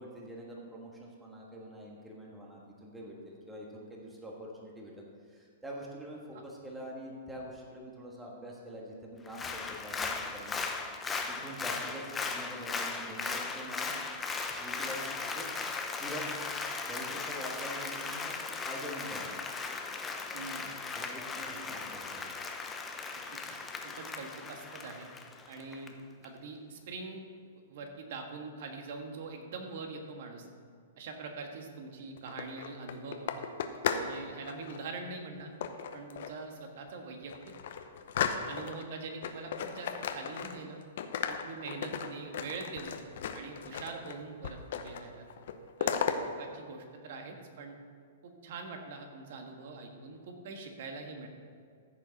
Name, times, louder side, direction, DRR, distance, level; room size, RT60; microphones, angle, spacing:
voice 1, 0.0-10.5 11.3-14.0 14.6-15.5 16.0-16.3 16.8-18.4 18.6-19.3 20.9-22.5, equal, 5° right, -2 dB, 1.5 m, -45 dB
Applause, 9.3-25.9 26.2-26.3, left 4 dB, 10° left, 0.6 m, -37 dB
voice 2, 20.3-20.8 23.3-23.6 23.8-25.1 25.5-27.2 27.7-30.5 31.0-33.5 34.0-35.5 35.9-37.5 38.5-40.8 41.3-43.1 43.3-45.2 45.8-47.8 48.2-51.3, right 3 dB, 55° right, 3 dB, 1.5 m, -43 dB
sound 1, 32.2-34.1 34.4-34.8 35.6-36.4 36.9-37.0 37.3-38.8 39.2-40.7 41.0-44.1 44.4-45.0 45.3-46.2, left 8 dB, 60° left, 0.8 m, -35 dB
14.5 x 6.8 x 4.1 m, 2.2 s
hypercardioid pair, 155°, 0 cm